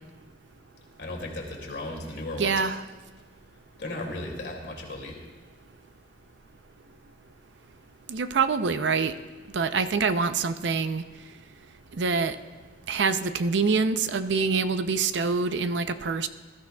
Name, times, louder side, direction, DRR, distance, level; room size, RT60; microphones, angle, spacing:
voice 1, 1.0-2.6 3.8-5.2, left 1 dB, 75° left, 0 dB, 2.6 m, -35 dB
voice 2, 2.4-2.8 8.1-9.1 9.5-11.0 12.0-12.4 12.9-16.3, right 4 dB, 90° right, 11 dB, 0.6 m, -25 dB
20.0 x 13.0 x 2.3 m, 1.3 s
head